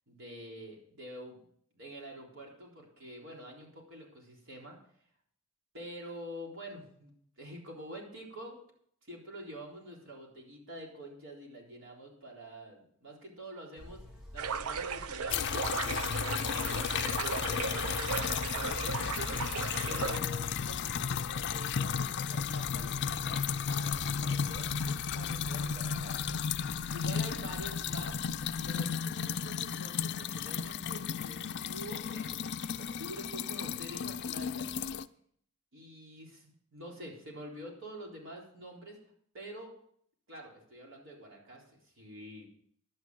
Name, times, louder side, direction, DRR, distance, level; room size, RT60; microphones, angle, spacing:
voice 1, 0.1-1.4 1.7-4.8 5.7-8.6 9.0-14.0 14.3-17.2 17.4-19.0 19.8-26.4 26.9-28.2 28.6-34.7 35.7-39.0 39.3-39.7 40.3-42.5, equal, 65° right, -1 dB, 3.9 m, -47 dB
Buzz, 13.8-28.8, left 1 dB, 5° right, 2.2 m, -47 dB
sound 1, 14.4-20.2, right 6 dB, 80° right, 0.6 m, -36 dB
sound 2, 15.3-35.1, left 7 dB, 55° left, 0.5 m, -34 dB
11.0 x 9.7 x 6.2 m, 0.65 s
head